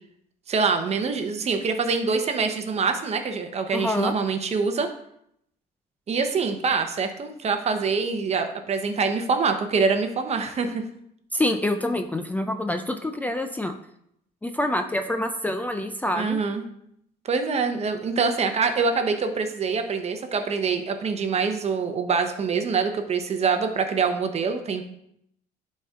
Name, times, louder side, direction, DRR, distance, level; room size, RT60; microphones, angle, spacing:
voice 1, 0.5-4.9 6.1-10.8 16.1-16.6 17.2-24.8, right 5 dB, 40° right, 7 dB, 0.9 m, -25 dB
voice 2, 3.7-4.1 11.3-13.7 14.4-16.4, left 1 dB, 10° left, 6 dB, 0.5 m, -26 dB
10.5 x 4.3 x 3.7 m, 0.74 s
cardioid pair, 110°, 17 cm